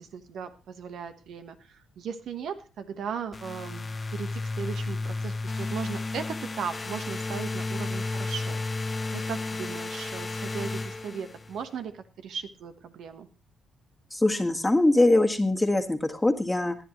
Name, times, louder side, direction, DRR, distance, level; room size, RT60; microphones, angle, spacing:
voice 1, 0.0-13.3, right 7 dB, 70° right, 9 dB, 1.2 m, -37 dB
sound 1, 3.3-11.6, left 3 dB, 30° left, 0.7 m, -33 dB
voice 2, 14.1-16.8, left 2 dB, 10° left, 6 dB, 1.7 m, -22 dB
18.5 x 11.0 x 3.1 m, 0.31 s
cardioid pair, 90°, 0 cm